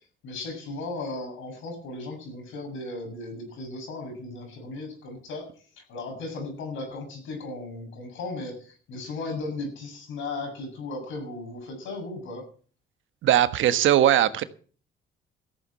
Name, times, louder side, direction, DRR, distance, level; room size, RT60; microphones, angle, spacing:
voice 1, 0.2-5.5 5.7-12.5, left 2 dB, 85° left, 7.4 m, -36 dB
voice 2, 13.2-14.4, right 11 dB, 80° right, 1.3 m, -20 dB
14.0 x 8.6 x 7.6 m
cardioid pair, 90°, 20 cm